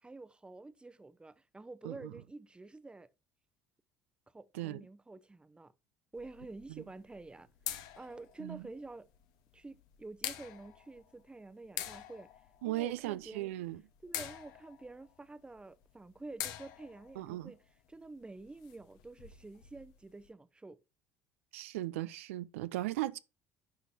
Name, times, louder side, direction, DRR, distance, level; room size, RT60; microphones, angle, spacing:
voice 1, 0.0-3.1 4.3-5.7 6.1-7.5 8.0-9.1 9.5-12.3 12.6-13.5 14.0-17.6 17.9-20.8, right 2 dB, 15° right, 0.8 m, -49 dB
sound 1, 6.1-20.3, left 11 dB, 70° left, 1.1 m, -47 dB
voice 2, 12.6-13.8 17.2-17.5 21.5-23.2, right 16 dB, 85° right, 0.4 m, -37 dB
10.0 x 5.1 x 2.7 m
hypercardioid pair, 70°, 7 cm